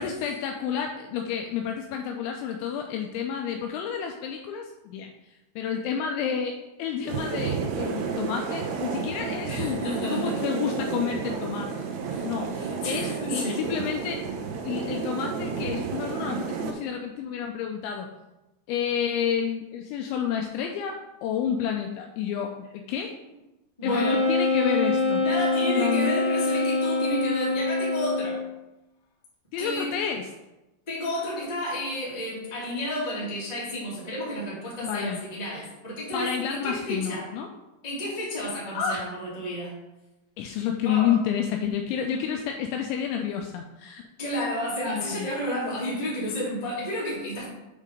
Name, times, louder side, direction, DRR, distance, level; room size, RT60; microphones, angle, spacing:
voice 1, 0.0-9.8 10.1-11.7 12.2-12.5 12.8-14.2 14.7-18.1 18.7-22.5 22.9-23.1 23.8-25.2 25.6-26.1 29.5-30.3 34.8-35.2 35.5-35.7 36.1-37.5 38.7-39.1 40.4-44.0 44.9-45.3, left 8 dB, 85° left, 3 dB, 2.7 m, -30 dB
sound 1, 7.1-16.7, right 5 dB, 80° right, 2.4 m, -31 dB
voice 2, 9.4-10.4 12.1-12.3 12.5-13.7 23.8-24.2 25.2-28.4 29.6-29.9 30.9-37.3 37.8-39.7 40.8-41.1 44.2-47.4, left 1 dB, 15° left, -8 dB, 1.2 m, -31 dB
Wind instrument woodwind instrument, 23.8-28.5, left 2 dB, 65° left, 3.4 m, -25 dB
8.3 x 3.7 x 5.0 m, 1.0 s
omnidirectional pair, 5.7 m